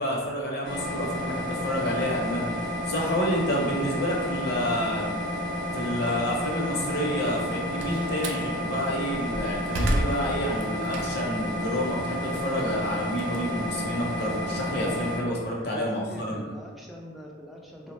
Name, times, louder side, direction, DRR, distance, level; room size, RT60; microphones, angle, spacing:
voice 1, 0.0-5.2 5.7-16.4, equal, 55° left, -3 dB, 0.6 m, -29 dB
sound 1, 0.6-15.2, left 1 dB, 85° left, 0.9 m, -31 dB
Slam, 7.3-8.5 9.0-11.4 11.8-14.2, right 1 dB, 75° right, 0.4 m, -32 dB
voice 2, 15.7-17.9, equal, ahead, -2 dB, 0.3 m, -42 dB
3.4 x 2.1 x 2.9 m, 1.5 s
head